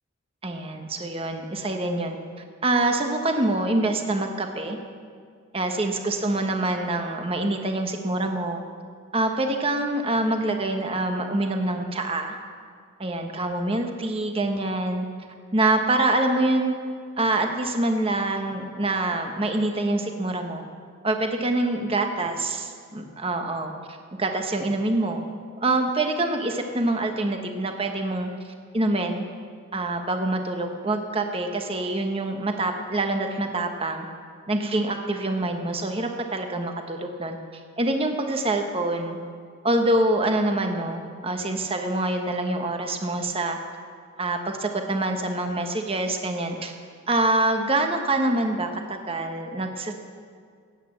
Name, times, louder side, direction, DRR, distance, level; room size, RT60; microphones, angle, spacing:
voice 1, 0.4-2.2 2.6-4.8 5.5-8.6 9.1-12.4 13.0-15.1 15.5-16.7 17.2-20.6 21.0-25.3 25.6-28.3 28.7-29.2 29.7-34.1 34.5-37.4 37.8-39.2 39.6-43.6 44.2-46.7 47.1-49.9, right 2 dB, 25° right, 4 dB, 1.1 m, -25 dB
15.0 x 9.3 x 7.8 m, 2.1 s
head